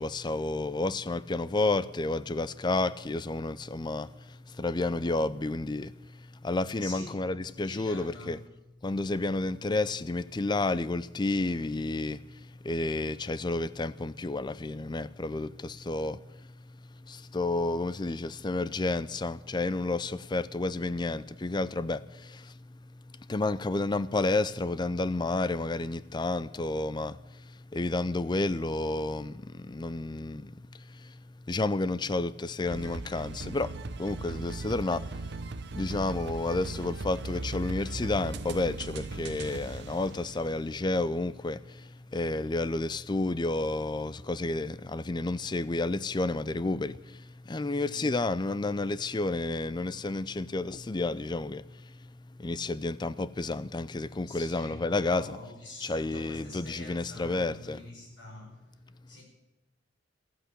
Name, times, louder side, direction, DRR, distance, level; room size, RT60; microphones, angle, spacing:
voice 1, 0.0-8.4 8.8-16.5 17.0-22.8 23.3-31.2 31.5-35.5 35.7-52.1 52.4-55.3 55.8-57.8, left 2 dB, 25° left, 0.4 m, -31 dB
voice 2, 6.8-7.2 7.6-8.4 47.6-48.1 54.3-58.8 59.1-59.2, left 2 dB, 65° left, 5.2 m, -46 dB
sound 1, 32.6-41.1, right 3 dB, 60° right, 0.7 m, -38 dB
15.0 x 8.1 x 9.9 m
head